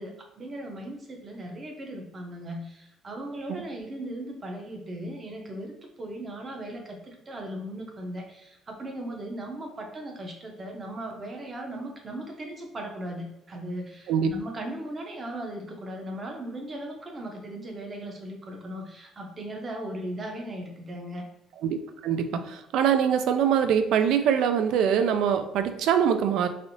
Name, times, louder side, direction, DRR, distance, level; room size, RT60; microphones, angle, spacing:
voice 1, 0.0-5.7 6.0-21.3, right 1 dB, 30° right, 2 dB, 0.7 m, -37 dB
voice 2, 22.0-26.5, right 8 dB, 75° right, 8 dB, 0.3 m, -23 dB
3.3 x 2.5 x 2.6 m, 0.86 s
cardioid pair, 130°, 0 cm